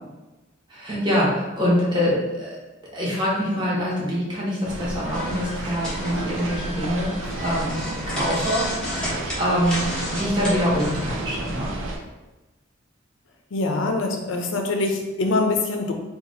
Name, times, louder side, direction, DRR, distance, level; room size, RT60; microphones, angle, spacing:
voice 1, 0.7-2.6 2.9-9.8 10.1-11.7, equal, 25° right, -6 dB, 0.9 m, -25 dB
sound 1, 4.6-12.0, right 2 dB, 75° right, 0.5 m, -32 dB
sound 2, 5.1-11.2, equal, 5° left, 0.8 m, -32 dB
voice 2, 13.5-15.9, left 3 dB, 75° left, 3 dB, 0.5 m, -24 dB
2.8 x 2.4 x 3.9 m, 1.1 s
head